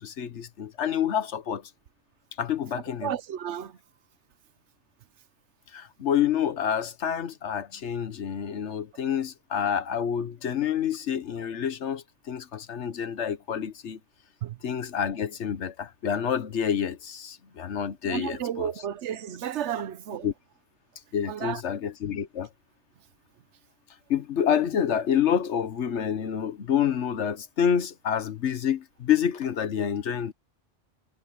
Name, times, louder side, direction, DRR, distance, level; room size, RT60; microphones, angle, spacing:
voice 1, 0.0-1.7 2.4-3.1 5.7-14.0 14.6-18.7 20.2-20.3 21.1-22.5 24.1-30.3, left 8 dB, 80° left, 1.3 m, -28 dB
voice 2, 3.0-3.8 14.4-14.6 18.0-20.3 21.3-21.6, right 10 dB, 80° right, 1.0 m, -32 dB
omnidirectional pair, 1.2 m